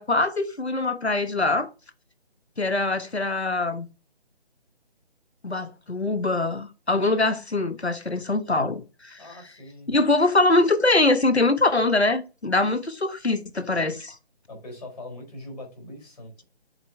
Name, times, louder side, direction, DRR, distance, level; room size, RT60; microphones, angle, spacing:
voice 1, 0.0-1.7 2.6-3.9 5.4-9.2 9.9-14.2, left 2 dB, 90° left, 1.1 m, -23 dB
voice 2, 9.2-9.9 14.5-16.4, left 1 dB, 40° left, 4.2 m, -41 dB
7.8 x 4.9 x 3.3 m
figure-of-eight pair, 150°, 32 cm